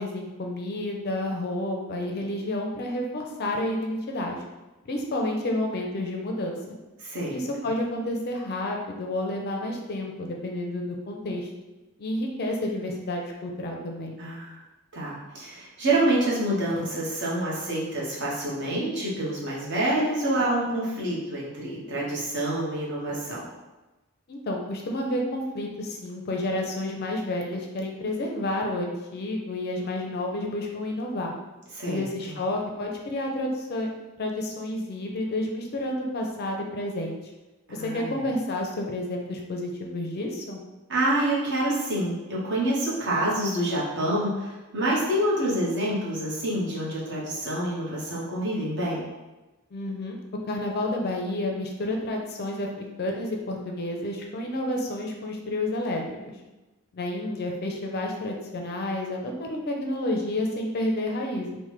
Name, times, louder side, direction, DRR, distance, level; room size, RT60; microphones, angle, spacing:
voice 1, 0.0-4.4 4.9-6.8 7.3-11.5 12.0-14.2 24.3-31.3 31.8-33.9 34.2-37.2 37.7-40.6 49.7-50.2 50.5-56.3 56.9-61.6, left 1 dB, 45° left, 1 dB, 0.4 m, -30 dB
voice 2, 7.0-7.4 14.2-14.6 14.9-23.4 31.7-32.3 37.7-38.2 40.9-49.1, right 1 dB, 55° right, -6 dB, 0.9 m, -27 dB
3.3 x 2.1 x 3.0 m, 1.1 s
head